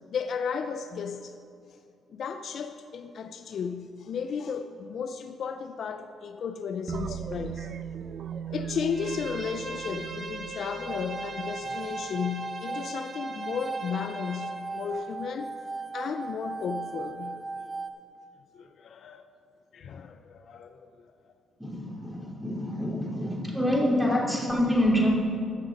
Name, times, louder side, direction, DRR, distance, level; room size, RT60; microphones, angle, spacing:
voice 1, 0.1-1.3 2.1-7.7 8.5-15.5 15.9-17.4 18.5-19.2 19.7-21.1 24.1-24.2, left 6 dB, 60° left, 8 dB, 0.5 m, -34 dB
sound 1, 6.9-11.6, right 8 dB, 60° right, 0.5 m, -38 dB
Bowed string instrument, 8.9-14.5, right 3 dB, 40° right, 2.8 m, -41 dB
sound 2, 10.9-17.9, right 3 dB, 20° right, 0.8 m, -37 dB
voice 2, 21.6-25.1, equal, 5° right, -4 dB, 3.0 m, -26 dB
15.0 x 6.4 x 5.2 m, 2.4 s
cardioid pair, 90°, 0 cm